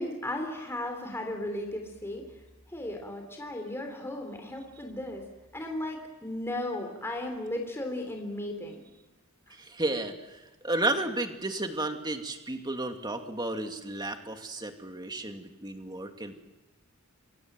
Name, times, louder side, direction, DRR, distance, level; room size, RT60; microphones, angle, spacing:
voice 1, 0.0-2.2 2.7-5.2 5.5-8.8 9.5-9.6, left 1 dB, 10° left, 3 dB, 3.8 m, -35 dB
voice 2, 9.5-16.4, right 2 dB, 20° right, 5 dB, 2.5 m, -33 dB
29.0 x 25.5 x 7.7 m, 1.1 s
head